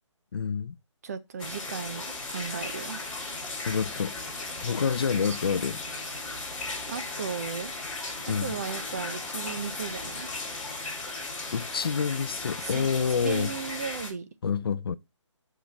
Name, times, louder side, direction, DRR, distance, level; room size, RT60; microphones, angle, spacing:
voice 1, 0.3-0.8 3.7-4.2 4.6-5.8 8.3-8.5 11.5-13.5 14.4-14.9, left 6 dB, 50° left, 0.4 m, -28 dB
voice 2, 1.0-3.0 5.1-5.6 6.9-7.7 8.3-10.3 12.6-12.9 13.2-14.3, right 6 dB, 30° right, 0.6 m, -36 dB
sound 1, 1.4-14.1, left 3 dB, 5° left, 1.9 m, -36 dB
5.8 x 4.9 x 4.1 m
hypercardioid pair, 165°, 16 cm